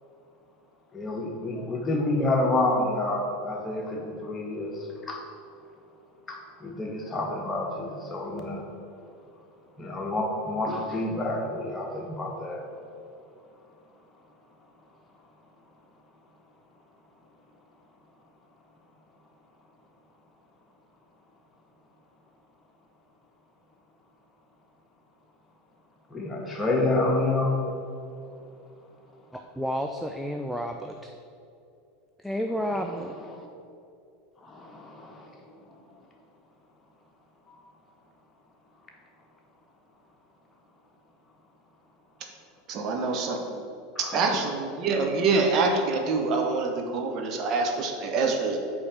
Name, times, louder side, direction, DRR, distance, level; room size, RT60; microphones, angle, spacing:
voice 1, 0.9-5.2 6.3-8.6 9.8-12.6 26.1-27.6 33.0-33.1 34.4-35.3 37.5-37.6 42.9-43.0 43.9-44.4, left 2 dB, 20° left, -1 dB, 1.5 m, -29 dB
voice 2, 29.3-31.1 32.2-33.1, equal, ahead, 4 dB, 0.4 m, -31 dB
voice 3, 42.7-43.6 44.0-48.6, right 3 dB, 40° right, 2 dB, 1.0 m, -26 dB
8.5 x 3.7 x 6.4 m, 2.6 s
figure-of-eight pair, 80°, 0 cm